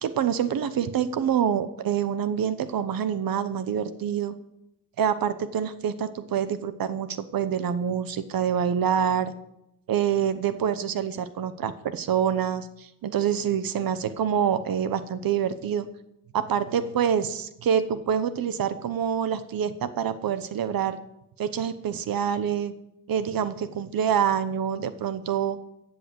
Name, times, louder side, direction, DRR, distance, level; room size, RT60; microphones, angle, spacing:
voice 1, 0.0-4.3 5.0-9.3 9.9-15.9 16.3-21.0 21.4-22.7 23.1-25.6, right 8 dB, 80° right, 12 dB, 1.0 m, -26 dB
14.5 x 7.7 x 7.8 m, 0.82 s
wide cardioid pair, 135°, 34 cm